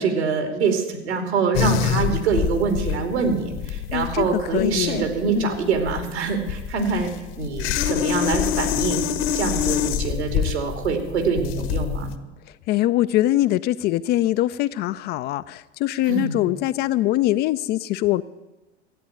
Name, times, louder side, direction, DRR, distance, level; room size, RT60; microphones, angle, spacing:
voice 1, 0.0-7.1 7.4-9.0 9.3-12.1 16.1-16.4, right 5 dB, 75° right, 5 dB, 2.8 m, -24 dB
sound 1, 1.5-12.1, left 9 dB, 55° left, 1.0 m, -25 dB
voice 2, 3.9-5.1 5.4-5.6 12.7-18.2, left 15 dB, 30° left, 13 dB, 0.4 m, -23 dB
13.5 x 9.2 x 8.8 m, 1.1 s
figure-of-eight pair, 85°, 33 cm